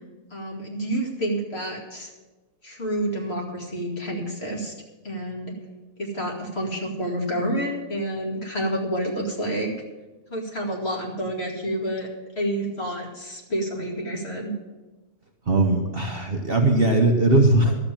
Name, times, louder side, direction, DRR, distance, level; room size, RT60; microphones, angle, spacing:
voice 1, 0.3-2.1 2.6-4.7 5.0-5.5 6.0-9.7 10.3-12.1 12.4-14.5, right 1 dB, 40° left, -1 dB, 2.6 m, -29 dB
voice 2, 15.5-17.8, right 2 dB, 40° right, 2 dB, 1.2 m, -19 dB
12.5 x 7.4 x 8.9 m, 1.2 s
omnidirectional pair, 1.6 m